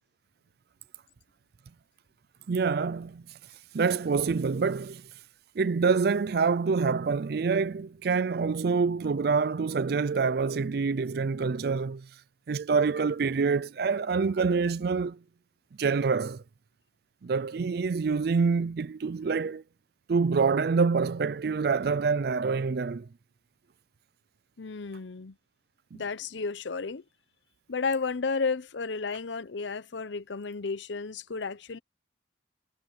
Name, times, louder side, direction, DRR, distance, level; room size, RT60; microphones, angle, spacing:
voice 1, 2.5-3.2 3.7-5.0 5.6-12.1 12.5-15.2 15.8-16.4 17.2-19.6 20.1-23.1 25.9-26.0, right 5 dB, 55° right, 0.4 m, -26 dB
voice 2, 24.6-25.3 25.9-27.0 27.7-31.8, left 4 dB, 75° left, 0.7 m, -32 dB
head